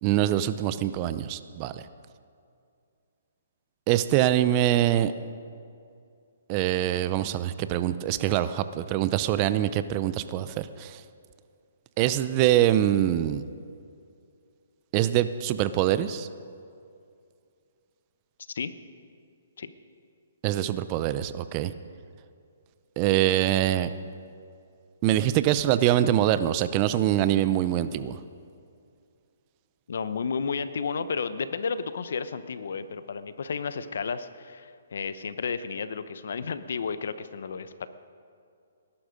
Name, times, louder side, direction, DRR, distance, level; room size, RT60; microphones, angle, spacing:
voice 1, 0.0-1.9 3.9-5.1 6.5-11.0 12.0-13.4 14.9-16.3 20.4-21.7 23.0-23.9 25.0-28.2, right 12 dB, 30° right, 13 dB, 0.6 m, -24 dB
voice 2, 29.9-37.9, left 5 dB, 70° left, 13 dB, 0.8 m, -32 dB
20.0 x 11.5 x 5.2 m, 2.4 s
hypercardioid pair, 150°, 0 cm